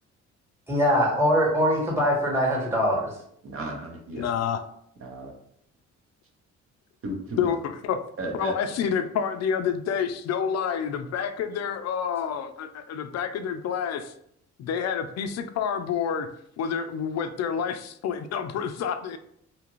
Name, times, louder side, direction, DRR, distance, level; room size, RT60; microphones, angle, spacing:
voice 1, 0.7-3.1, equal, 10° right, -2 dB, 1.2 m, -22 dB
voice 2, 3.4-4.3 5.0-5.4 7.0-7.5 8.2-8.6, right 2 dB, 45° right, 2 dB, 0.8 m, -34 dB
voice 3, 4.2-4.6 7.4-8.0 8.3-14.1 14.6-16.3 16.6-19.2, left 7 dB, 60° left, 9 dB, 0.4 m, -28 dB
2.7 x 2.5 x 3.0 m, 0.70 s
cardioid pair, 90°, 30 cm